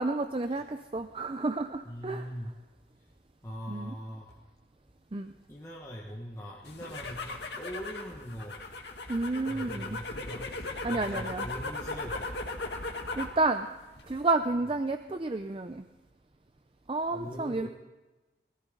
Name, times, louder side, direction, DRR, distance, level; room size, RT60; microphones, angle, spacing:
voice 1, 0.0-2.3 3.7-3.9 5.1-5.3 9.1-10.0 10.8-11.4 13.2-13.7 14.1-15.8 16.9-17.7, right 3 dB, 30° right, 8 dB, 0.5 m, -30 dB
voice 2, 1.8-2.5 3.4-4.3 5.5-8.6 9.4-12.3 17.1-17.7, equal, 15° left, -4 dB, 1.5 m, -41 dB
sound 1, 6.7-13.4 13.8-14.3, left 2 dB, 80° left, 1.9 m, -38 dB
21.0 x 14.5 x 3.8 m, 1.1 s
head